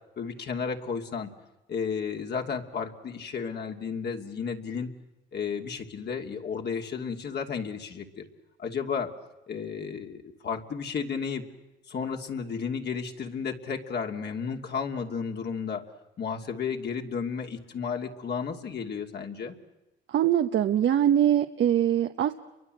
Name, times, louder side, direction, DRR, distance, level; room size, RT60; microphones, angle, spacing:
voice 1, 0.2-1.3 1.7-4.9 5.3-8.2 8.6-9.1 9.5-11.4 11.9-15.8 16.2-19.6, left 6 dB, 55° left, 3 dB, 2.9 m, -33 dB
voice 2, 20.1-22.3, right 10 dB, 70° right, 7 dB, 1.0 m, -23 dB
29.5 x 23.5 x 7.9 m, 1.0 s
cardioid pair, 90°, 20 cm